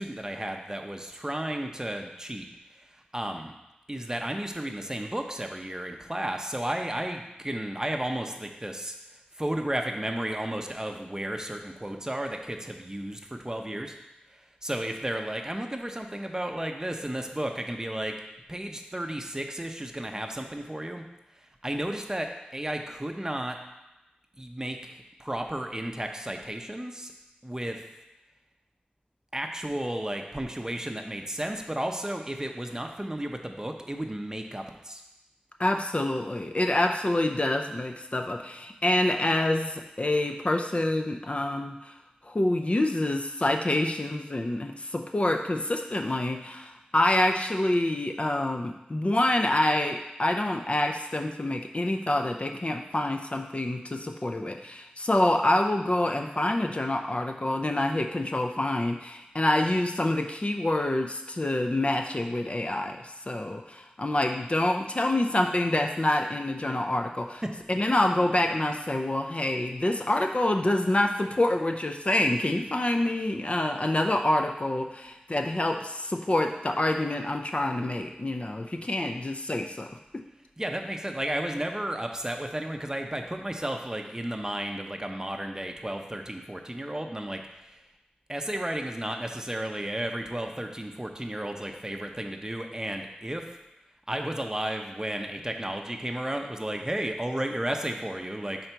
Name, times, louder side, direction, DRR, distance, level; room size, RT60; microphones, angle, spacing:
voice 1, 0.0-2.5 2.7-3.5 3.9-8.9 9.3-14.0 14.3-18.1 18.5-21.0 21.6-23.6 24.4-27.1 27.4-27.8 29.3-35.0 67.4-67.5 80.6-87.8 88.3-93.6 94.1-98.6, right 1 dB, 20° right, 4 dB, 0.6 m, -33 dB
voice 2, 35.6-41.9 42.2-67.4 67.7-79.9, left 1 dB, 40° left, 4 dB, 0.5 m, -27 dB
5.6 x 3.9 x 4.5 m, 0.97 s
wide cardioid pair, 60°, 3 cm